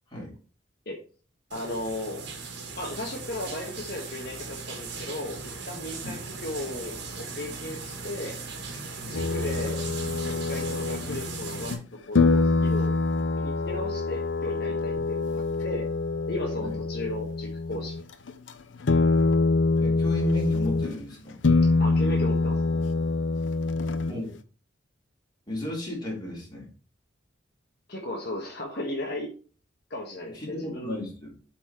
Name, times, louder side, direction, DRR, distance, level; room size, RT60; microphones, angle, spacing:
voice 1, 1.5-2.2 2.8-5.4 5.7-8.4 9.1-9.8 10.2-11.8 12.1-13.0 13.3-15.9 16.3-18.0 21.8-22.8 27.9-29.3 29.9-31.0, left 1 dB, 55° left, 0 dB, 1.3 m, -35 dB
sound 1, 1.5-11.7, right 4 dB, 60° right, 1.8 m, -38 dB
sound 2, 9.1-11.8 12.2-18.0 18.3-18.5 18.8-21.0 21.4-24.4, left 3 dB, 75° left, 0.7 m, -25 dB
voice 2, 19.8-21.4 24.1-24.3 25.5-26.7 30.3-31.3, left 1 dB, 20° left, -3 dB, 3.2 m, -34 dB
8.2 x 4.3 x 4.3 m, 0.38 s
head